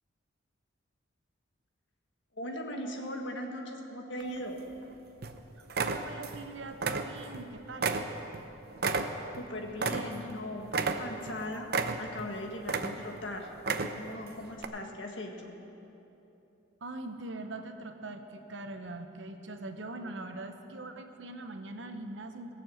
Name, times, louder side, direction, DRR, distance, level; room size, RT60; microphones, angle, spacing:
voice 1, 2.3-4.6 9.4-15.6, left 1 dB, 70° left, 2 dB, 1.6 m, -39 dB
sound 1, 4.2-4.8 5.2-5.4 5.7-6.4 6.7-7.4 7.8-10.4 10.7-11.3 11.7-12.3 12.6-13.2 13.6-14.1 14.6-14.7, right 4 dB, 50° right, 0.6 m, -32 dB
voice 2, 5.8-8.0 8.3-8.5 16.8-22.5, right 2 dB, 70° right, 7 dB, 0.9 m, -42 dB
17.5 x 7.0 x 7.7 m, 3.0 s
head